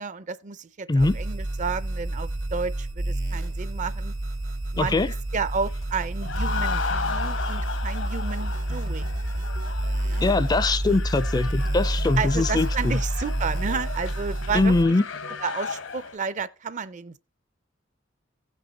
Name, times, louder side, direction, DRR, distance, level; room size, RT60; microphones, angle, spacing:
voice 1, 0.0-4.1 4.7-5.0 5.3-9.1 10.1-10.3 12.2-14.7 15.4-17.2, right 5 dB, 40° right, 0.5 m, -31 dB
sound 1, 1.0-14.8, right 1 dB, 85° right, 2.2 m, -29 dB
voice 2, 4.8-5.1 10.2-13.0 14.5-15.0, left 2 dB, 20° left, 0.4 m, -22 dB
sound 2, 5.7-16.2, left 5 dB, 80° left, 1.1 m, -35 dB
sound 3, 6.3-15.9, right 1 dB, 65° right, 0.8 m, -47 dB
15.5 x 5.4 x 4.0 m
head